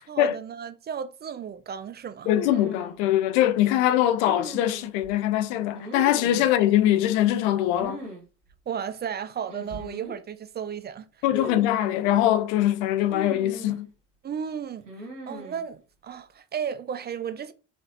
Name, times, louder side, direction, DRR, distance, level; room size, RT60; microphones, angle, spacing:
voice 1, 0.1-2.3 8.7-11.1 14.2-14.8 15.3-17.5, right 7 dB, 30° right, 0.4 m, -34 dB
sound 1, 2.2-3.0 4.3-5.1 5.7-6.5 7.8-8.2 8.5-8.6 9.5-10.2 11.3-12.1 13.1-13.9 14.9-15.6, equal, 90° right, 0.8 m, -38 dB
voice 2, 2.3-8.0 11.2-13.9, left 12 dB, 70° left, 0.5 m, -22 dB
4.2 x 3.1 x 2.6 m
figure-of-eight pair, 45°, 36 cm